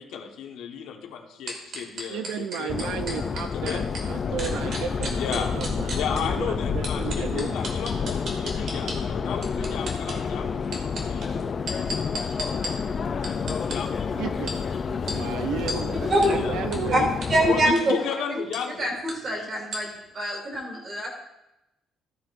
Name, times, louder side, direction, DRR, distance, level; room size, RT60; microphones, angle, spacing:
voice 1, 0.0-2.9 3.5-3.9 5.1-5.5 5.9-10.6 11.1-11.3 13.6-13.9 16.3-16.6 17.5-18.9 19.3-19.6, left 7 dB, 85° left, 1 dB, 1.4 m, -33 dB
sound 1, 1.5-4.0 4.4-6.2 6.8-9.0 9.4-10.2 10.6-12.7 13.2-13.7 14.5-14.6 15.1-15.2 15.7-15.8 16.2-16.3 16.7-16.8 17.2-17.3 17.6-17.8 18.5-18.6 19.1-19.2 19.7-19.8, right 1 dB, 50° right, 2.4 m, -33 dB
voice 2, 2.1-7.6 13.5-13.7 14.1-14.5 15.1-17.1, right 8 dB, 80° right, 8 dB, 0.6 m, -34 dB
Subway metro underground, 2.7-17.7, left 5 dB, 30° left, 0.4 m, -29 dB
voice 3, 17.3-18.0 18.3-18.4 18.8-19.9 20.1-21.1, right 1 dB, 35° right, -1 dB, 2.9 m, -24 dB
14.0 x 9.6 x 2.6 m, 0.91 s
cardioid pair, 165°, 0 cm